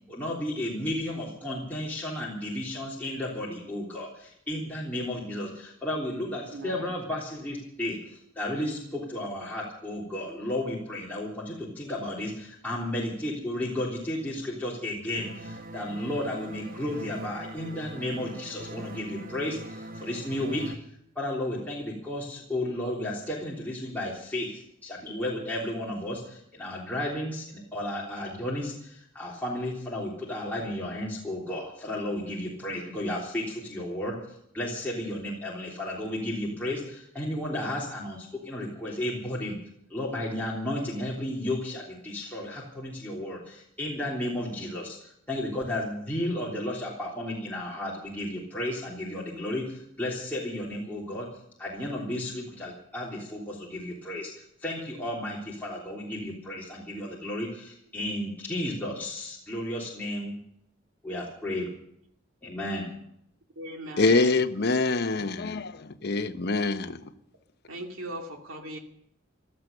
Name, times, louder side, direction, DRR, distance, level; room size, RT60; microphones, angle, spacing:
voice 1, 0.1-20.7 21.1-39.6 39.9-51.3 51.6-60.3 61.0-61.7 62.4-62.9, left 1 dB, 10° left, -6 dB, 3.3 m, -33 dB
voice 2, 6.5-6.8 63.6-64.4 67.7-68.8, right 1 dB, 80° right, 3 dB, 2.5 m, -38 dB
sound 1, 15.2-20.7, right 1 dB, 45° right, 1.0 m, -41 dB
voice 3, 64.0-67.0, left 3 dB, 55° left, 8 dB, 1.0 m, -25 dB
16.5 x 12.5 x 6.8 m, 0.73 s
head